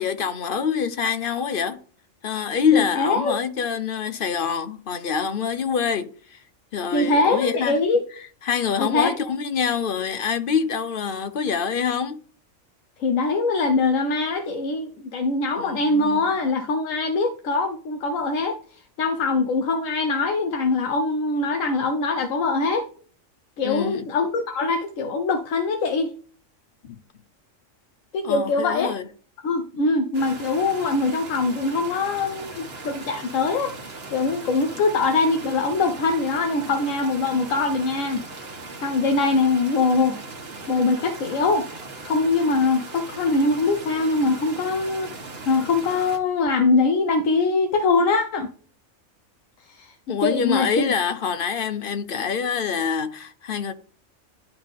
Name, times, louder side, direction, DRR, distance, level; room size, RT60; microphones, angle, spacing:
voice 1, 0.0-1.8 2.2-6.4 6.7-7.8 8.5-12.2 15.6-16.4 23.6-24.1 26.8-27.0 28.2-29.1 50.1-53.7, left 7 dB, 50° left, 0.7 m, -25 dB
voice 2, 2.7-3.4 6.9-8.0 8.8-9.1 13.0-22.9 23.6-26.1 28.1-28.9 29.4-38.2 38.8-40.2 40.7-41.7 42.0-45.1 45.5-48.5 49.7-49.9 50.2-50.9, left 3 dB, 80° left, 1.1 m, -23 dB
sound 1, 30.1-46.2, right 3 dB, 50° right, 1.5 m, -38 dB
11.0 x 3.7 x 3.5 m
omnidirectional pair, 1.3 m